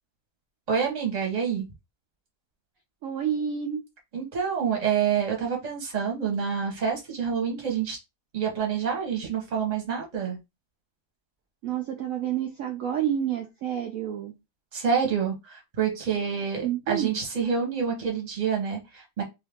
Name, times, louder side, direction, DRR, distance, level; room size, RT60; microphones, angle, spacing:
voice 1, 0.7-1.7 4.1-8.0 8.3-10.4 14.7-19.2, right 7 dB, 30° right, 1.0 m, -27 dB
voice 2, 3.0-3.8 11.6-14.3 16.6-17.2, right 9 dB, 70° right, 0.9 m, -29 dB
2.7 x 2.6 x 3.5 m
omnidirectional pair, 1.8 m